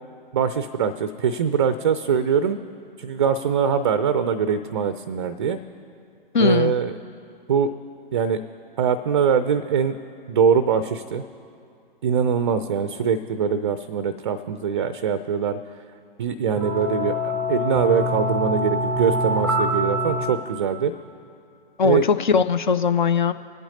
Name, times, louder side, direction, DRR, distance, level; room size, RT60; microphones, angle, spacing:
voice 1, 0.3-2.6 3.0-5.6 6.4-6.9 7.5-7.7 8.1-8.4 8.8-9.9 10.3-11.2 12.0-15.6 16.2-17.1 17.5-20.9 21.8-22.0, right 7 dB, 30° right, 12 dB, 0.4 m, -22 dB
voice 2, 6.3-6.7 21.8-23.3, left 5 dB, 55° left, 12 dB, 0.5 m, -20 dB
sound 1, 16.6-20.3, equal, 5° right, 1.0 m, -24 dB
21.5 x 8.6 x 2.8 m, 2.4 s
figure-of-eight pair, 120°, 29 cm